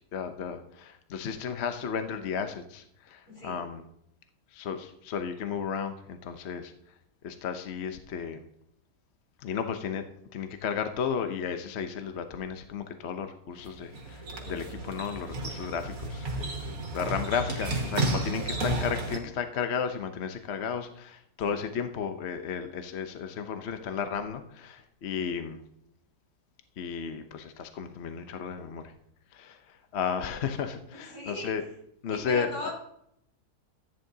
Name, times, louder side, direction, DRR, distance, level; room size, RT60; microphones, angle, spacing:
voice 1, 0.1-3.8 4.5-6.7 7.2-8.4 9.4-10.1 10.3-16.5 16.9-25.6 26.8-28.9 29.3-31.6 32.0-32.7, left 7 dB, 50° left, 8 dB, 0.9 m, -34 dB
voice 2, 3.3-3.6 21.4-21.6 30.9-31.5 32.1-32.7, left 1 dB, 80° left, -4 dB, 5.8 m, -38 dB
sound 1, 13.6-19.2, right 2 dB, 60° right, 2.1 m, -32 dB
14.0 x 9.6 x 2.7 m, 0.73 s
omnidirectional pair, 1.7 m